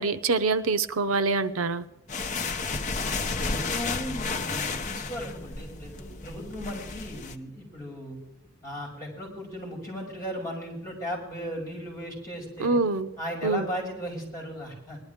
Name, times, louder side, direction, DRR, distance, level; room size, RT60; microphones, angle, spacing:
voice 1, 0.0-1.8 12.6-13.1 13.4-13.7, right 3 dB, 85° right, 0.7 m, -25 dB
sound 1, 2.1-7.4, left 4 dB, 35° left, 0.9 m, -32 dB
voice 2, 3.4-8.2 8.6-12.8 13.2-15.0, equal, 15° left, 6.6 m, -36 dB
20.0 x 12.0 x 3.6 m
head